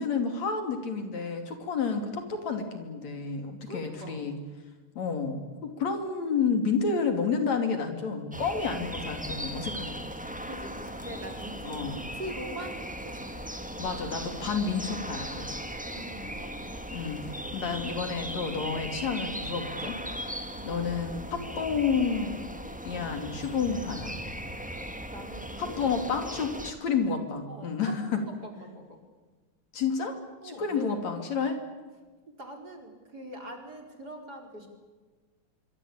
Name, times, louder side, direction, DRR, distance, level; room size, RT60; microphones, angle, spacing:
voice 1, 0.0-4.4 5.0-10.0 11.6-12.0 13.8-15.6 16.9-20.0 20.6-22.4 22.9-24.1 25.6-28.2 29.7-30.2 30.4-31.6, left 5 dB, 60° left, 6 dB, 4.0 m, -30 dB
voice 2, 3.6-4.3 10.4-13.4 15.8-16.7 20.4-20.6 25.1-26.5 27.5-29.0 30.4-30.9 32.4-34.7, right 1 dB, 30° right, 3 dB, 4.9 m, -43 dB
sound 1, 8.3-26.7, equal, 5° right, 1.7 m, -38 dB
26.0 x 24.5 x 8.7 m, 1.3 s
omnidirectional pair, 3.6 m